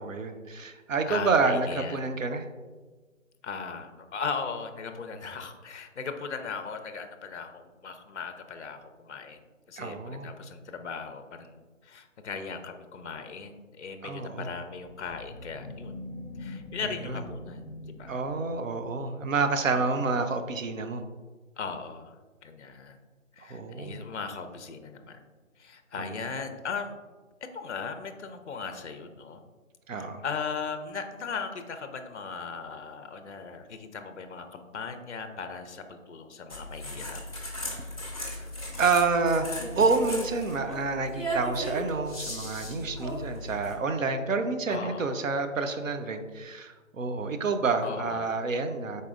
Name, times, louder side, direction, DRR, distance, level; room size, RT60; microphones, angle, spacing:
voice 1, 0.0-2.5 9.8-10.3 14.0-14.5 16.8-17.2 18.1-21.0 23.4-24.0 26.0-26.2 29.9-30.2 38.8-49.0, right 4 dB, 70° right, 7 dB, 0.6 m, -28 dB
voice 2, 1.1-2.0 3.4-9.4 9.7-16.0 16.4-18.2 19.7-19.9 21.6-22.2 22.4-23.0 23.3-25.2 25.6-27.0 27.5-29.4 29.9-37.2 41.5-41.8 44.7-45.1 47.8-48.2, left 5 dB, 60° left, 7 dB, 0.5 m, -38 dB
sound 1, 14.7-19.1, left 2 dB, 25° right, 1.0 m, -43 dB
sound 2, 36.5-43.7, equal, 25° left, 0.7 m, -36 dB
5.0 x 4.0 x 2.5 m, 1.3 s
figure-of-eight pair, 170°, 40 cm